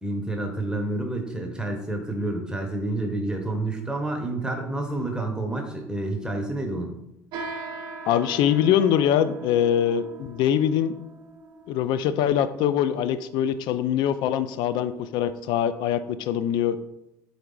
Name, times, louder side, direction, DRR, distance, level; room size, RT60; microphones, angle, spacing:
voice 1, 0.0-6.9, right 2 dB, 10° right, 2 dB, 0.8 m, -29 dB
sound 1, 7.3-15.1, right 3 dB, 60° right, 0.5 m, -41 dB
voice 2, 8.1-10.9 11.7-16.8, left 10 dB, 60° left, 12 dB, 0.4 m, -23 dB
3.9 x 3.4 x 3.8 m, 0.86 s
hypercardioid pair, 65°, 8 cm